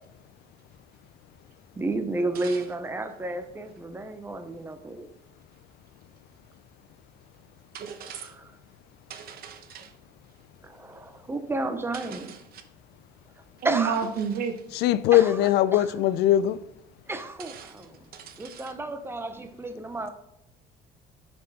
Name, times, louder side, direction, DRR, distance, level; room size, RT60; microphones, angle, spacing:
voice 1, 1.8-5.1 10.6-12.3 13.6-13.9 15.1-16.1 17.1-18.1 18.4-20.1, right 2 dB, 15° right, 0.7 m, -32 dB
voice 2, 7.7-8.3 9.1-9.9 11.9-12.6 13.6-14.8 17.4-17.9 18.1-18.7, right 7 dB, 65° right, 0.9 m, -33 dB
voice 3, 14.8-16.6, left 12 dB, 80° left, 0.4 m, -20 dB
6.4 x 4.4 x 4.1 m
cardioid pair, 110°, 17 cm